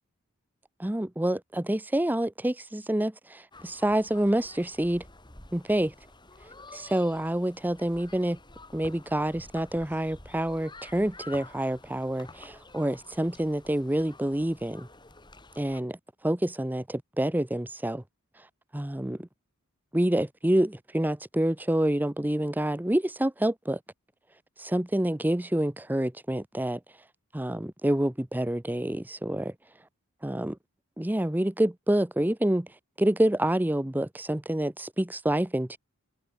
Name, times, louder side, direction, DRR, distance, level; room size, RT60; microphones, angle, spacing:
voice 1, 0.8-5.0 5.5-5.9 6.7-8.4 8.7-14.9 15.6-16.0 16.2-18.0 18.7-19.3 19.9-23.8 24.6-26.8 27.3-29.5 30.2-30.6 31.0-32.7 33.0-35.8, right 1 dB, 10° right, 0.7 m, -27 dB
sound 1, 3.5-15.8, left 2 dB, 20° left, 6.4 m, -50 dB
head